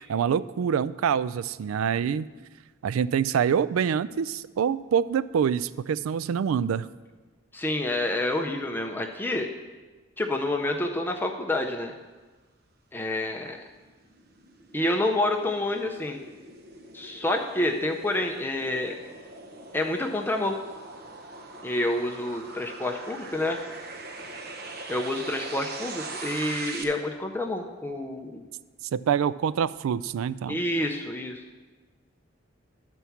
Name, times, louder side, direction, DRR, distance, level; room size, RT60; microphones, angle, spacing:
voice 1, 0.1-2.3 2.8-6.9 28.9-30.6, right 7 dB, 80° right, 17 dB, 0.3 m, -26 dB
voice 2, 7.5-9.5 10.2-11.9 12.9-13.6 14.7-16.2 16.9-19.0 19.7-20.6 21.6-23.6 24.9-28.5 30.5-31.4, left 1 dB, 10° left, 3 dB, 0.5 m, -28 dB
sound 1, 13.6-26.8, right 3 dB, 50° right, 0.7 m, -42 dB
11.0 x 4.5 x 7.0 m, 1.3 s
head